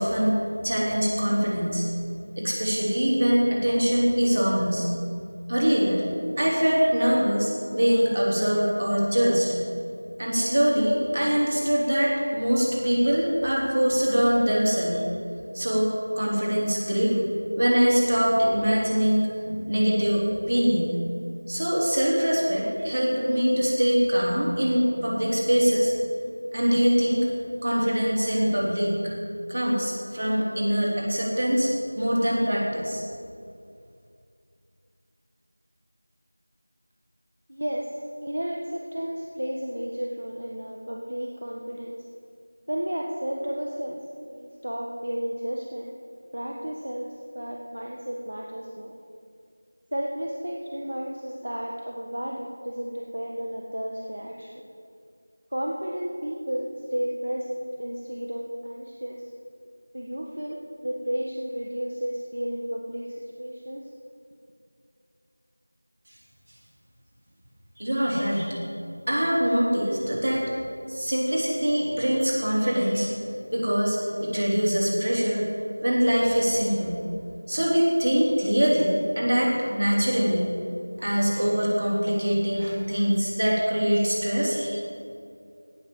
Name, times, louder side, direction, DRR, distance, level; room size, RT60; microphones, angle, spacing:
voice 1, 0.0-1.9 2.4-4.9 5.5-6.0 6.4-9.5 10.2-15.0 15.5-17.2 17.6-21.0 21.5-25.9 26.5-27.3 27.6-28.9 29.5-33.0 67.8-68.6 69.1-70.5 70.9-73.1 73.5-75.5 75.8-77.0 77.5-80.5 81.0-84.8, equal, 50° right, -3 dB, 3.5 m, -23 dB
voice 2, 37.5-41.9 42.7-45.9 46.3-48.9 49.9-54.6 55.5-59.2 59.9-63.8, equal, 70° right, -1 dB, 1.5 m, -32 dB
17.5 x 6.0 x 7.3 m, 2.4 s
figure-of-eight pair, 175°, 0 cm